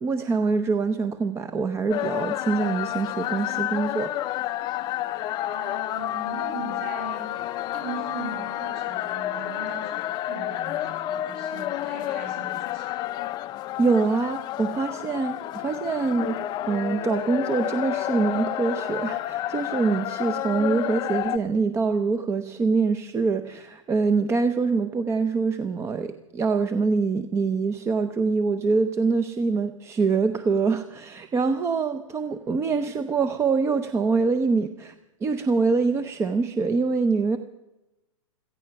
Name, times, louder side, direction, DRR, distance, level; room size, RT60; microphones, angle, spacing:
voice 1, 0.0-4.1 13.8-16.4 16.7-34.9 35.2-37.4, right 4 dB, 15° right, 10 dB, 0.6 m, -24 dB
sound 1, 1.9-21.4, left 13 dB, 25° left, 0.5 m, -30 dB
voice 2, 5.4-7.3 7.7-12.9, right 3 dB, 40° right, 1 dB, 6.5 m, -39 dB
16.0 x 14.5 x 5.9 m, 0.98 s
hypercardioid pair, 135°, 17 cm